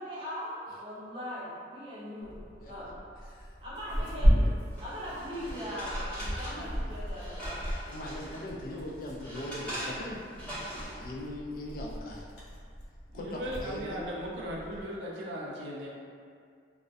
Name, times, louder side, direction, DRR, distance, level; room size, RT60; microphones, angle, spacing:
voice 1, 0.0-2.3 2.7-2.9 3.6-4.4 4.8-7.7, equal, 25° right, -10 dB, 0.7 m, -40 dB
Tearing, 2.2-14.8, equal, 65° left, 0.7 m, -34 dB
voice 2, 3.9-4.6 6.5-6.6 7.8-10.2 11.0-12.3 13.1-14.0, left 1 dB, 50° left, -2 dB, 0.3 m, -40 dB
sound 1, 4.7-8.5 8.9-11.0, equal, 5° left, 0.9 m, -41 dB
voice 3, 13.1-15.9, equal, 75° right, -4 dB, 0.4 m, -37 dB
2.4 x 2.1 x 2.4 m, 2.2 s
head